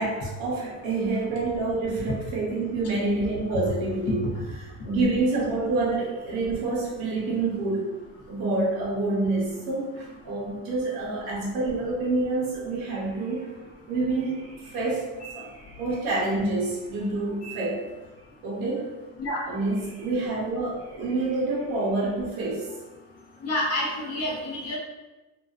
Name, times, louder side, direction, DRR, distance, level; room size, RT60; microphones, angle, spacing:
voice 1, 0.0-4.2 4.8-7.8 8.3-13.5 13.9-17.8 18.4-18.9 19.5-22.8, right 2 dB, 75° right, -3 dB, 0.9 m, -27 dB
voice 2, 23.4-24.8, left 1 dB, 45° left, -2 dB, 0.7 m, -29 dB
2.4 x 2.2 x 2.4 m, 1.1 s
cardioid pair, 135°, 35 cm